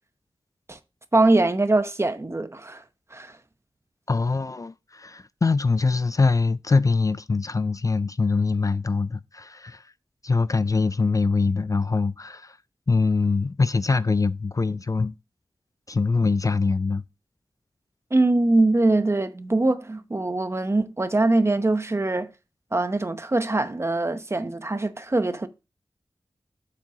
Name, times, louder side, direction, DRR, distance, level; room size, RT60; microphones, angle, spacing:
voice 1, 1.1-2.8 3.1-3.3 18.1-22.3 22.7-25.5, right 2 dB, 30° right, 0.9 m, -22 dB
voice 2, 4.1-9.9 10.2-12.6 12.9-15.1 15.9-17.0, left 4 dB, 35° left, 0.4 m, -23 dB
7.6 x 7.4 x 2.8 m
wide cardioid pair, 70°, 10 cm